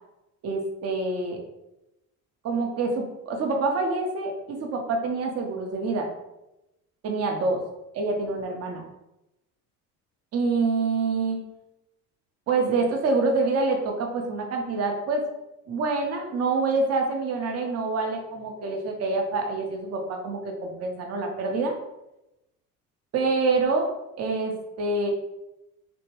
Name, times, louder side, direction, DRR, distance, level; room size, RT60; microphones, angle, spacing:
voice 1, 0.4-1.4 2.4-6.1 7.0-7.6 7.9-8.8 10.3-11.4 12.5-15.2 15.7-21.7 23.1-23.9 24.2-25.1, right 3 dB, 35° right, 2 dB, 0.7 m, -26 dB
2.8 x 2.2 x 2.9 m, 0.92 s
hypercardioid pair, 65°, 44 cm